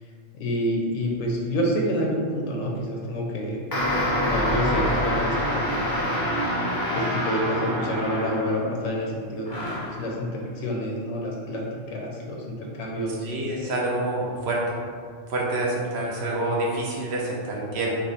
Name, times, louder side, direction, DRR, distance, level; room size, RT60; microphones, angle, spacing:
voice 1, 0.3-5.9 6.9-13.3, equal, 85° left, -1 dB, 1.0 m, -28 dB
sound 1, 3.7-8.8 9.5-10.0, equal, 35° left, 0.3 m, -26 dB
voice 2, 13.2-14.6 15.3-18.0, right 2 dB, 65° right, -3 dB, 0.8 m, -27 dB
3.6 x 2.1 x 3.8 m, 2.1 s
omnidirectional pair, 1.3 m